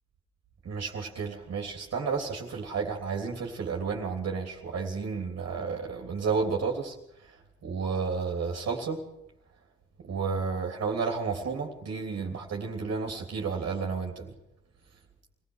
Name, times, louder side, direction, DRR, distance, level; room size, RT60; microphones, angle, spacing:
voice 1, 0.7-7.0 7.6-9.0 10.0-14.3, right 5 dB, 55° right, 1 dB, 3.4 m, -31 dB
25.5 x 17.0 x 6.5 m, 0.83 s
cardioid pair, 90°, 30 cm